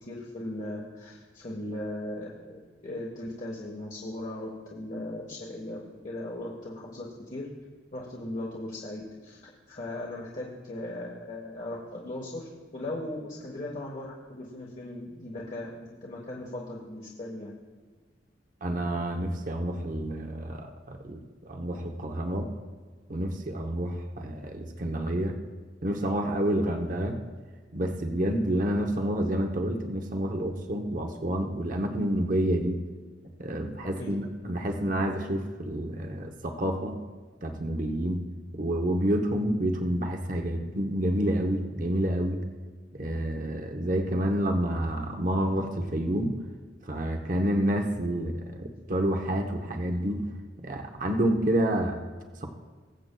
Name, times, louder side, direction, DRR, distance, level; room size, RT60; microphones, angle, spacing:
voice 1, 0.0-7.5 7.9-17.5 34.0-34.1, left 1 dB, 45° left, -4 dB, 1.2 m, -38 dB
voice 2, 18.6-22.5 23.1-25.3 25.8-27.2 27.7-32.8 33.4-36.9 37.4-38.2 38.5-42.4 42.9-46.3 46.9-50.2 50.6-52.0, right 1 dB, 45° right, 4 dB, 0.8 m, -29 dB
21.5 x 7.8 x 2.2 m, 1.5 s
head